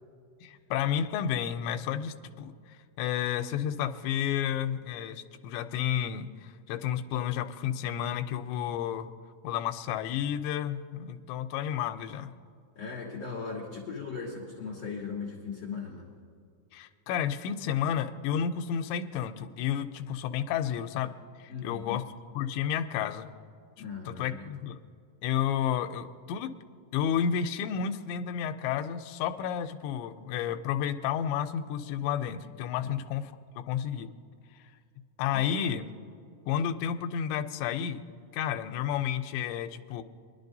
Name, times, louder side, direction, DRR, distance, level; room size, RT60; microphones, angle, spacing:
voice 1, 0.4-9.1 9.4-12.3 16.7-21.1 21.4-22.0 22.3-23.3 23.8-24.8 25.2-26.5 26.9-34.1 35.2-35.9 36.5-38.0 38.3-40.0, left 9 dB, 85° left, 9 dB, 2.9 m, -31 dB
voice 2, 12.7-16.1 21.5-22.0 23.8-24.5 32.8-32.9 35.3-35.7, left 5 dB, 70° left, -4 dB, 1.5 m, -38 dB
23.5 x 11.0 x 2.7 m, 2.3 s
omnidirectional pair, 5.1 m